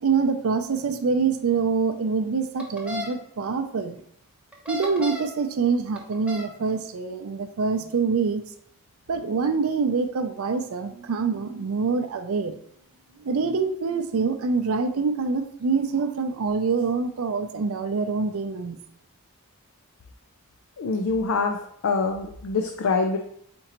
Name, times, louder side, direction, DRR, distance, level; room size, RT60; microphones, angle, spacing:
voice 1, 0.0-4.0 4.7-8.4 9.1-12.6 13.2-18.8, right 5 dB, 70° right, 8 dB, 0.5 m, -25 dB
sound 1, 2.6-3.1 4.5-5.4 6.0-6.5, left 2 dB, 5° right, 0.6 m, -34 dB
voice 2, 20.8-21.6 21.8-23.2, left 4 dB, 65° left, 4 dB, 0.4 m, -24 dB
4.4 x 3.8 x 2.9 m, 0.67 s
head